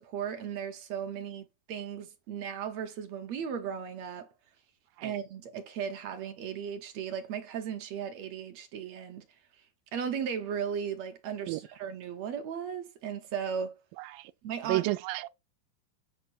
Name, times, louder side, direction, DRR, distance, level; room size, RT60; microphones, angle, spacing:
voice 1, 0.0-4.3 5.0-9.3 9.9-13.8 14.4-14.9, right 7 dB, 65° right, 2.0 m, -36 dB
voice 2, 14.0-14.3 14.6-15.3, right 19 dB, 85° right, 2.3 m, -31 dB
8.7 x 5.7 x 4.4 m
omnidirectional pair, 4.0 m